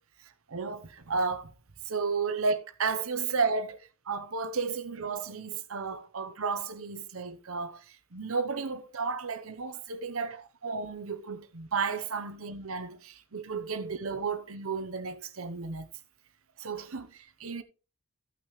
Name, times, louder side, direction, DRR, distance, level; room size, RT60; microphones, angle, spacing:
voice 1, 0.2-1.5 1.8-3.8 4.1-15.9 16.6-17.6, right 4 dB, 75° right, 0.9 m, -33 dB
14.5 x 6.0 x 3.2 m
head